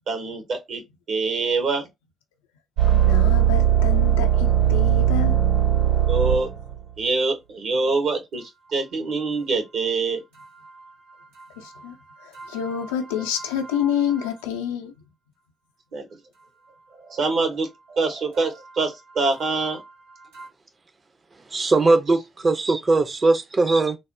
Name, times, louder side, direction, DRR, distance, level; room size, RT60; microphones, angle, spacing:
voice 1, 0.1-0.8 1.1-1.9 6.1-6.5 7.0-10.2 15.9-16.0 17.1-19.8, right 3 dB, 60° right, 0.9 m, -25 dB
voice 2, 2.8-5.4 11.6-12.0 12.2-14.9, left 9 dB, 75° left, 0.4 m, -28 dB
sound 1, 2.8-6.8 12.4-13.8 14.1-14.3 20.3-20.4, right 10 dB, 80° right, 1.9 m, -20 dB
voice 3, 21.5-24.0, right 3 dB, 35° right, 0.5 m, -20 dB
3.3 x 2.0 x 2.6 m
figure-of-eight pair, 40°, 0 cm